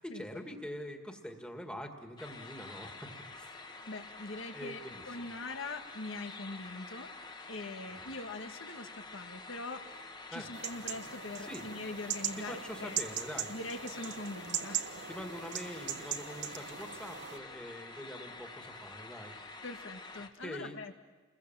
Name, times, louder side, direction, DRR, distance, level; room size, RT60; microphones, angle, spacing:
voice 1, 0.0-3.6 4.5-5.0 7.9-8.1 10.3-10.5 11.4-11.6 12.4-13.5 14.6-14.7 15.1-19.4 20.4-20.8, equal, 5° left, 4 dB, 2.0 m, -44 dB
sound 1, 2.2-20.3, left 3 dB, 20° left, 1.4 m, -48 dB
voice 2, 3.9-4.8 5.1-7.1 7.5-9.9 10.3-13.0 13.5-14.8 19.6-20.9, left 2 dB, 80° left, 6 dB, 1.8 m, -42 dB
sound 2, 10.5-17.4, right 9 dB, 60° right, 1.3 m, -40 dB
29.5 x 21.5 x 7.5 m, 1.3 s
head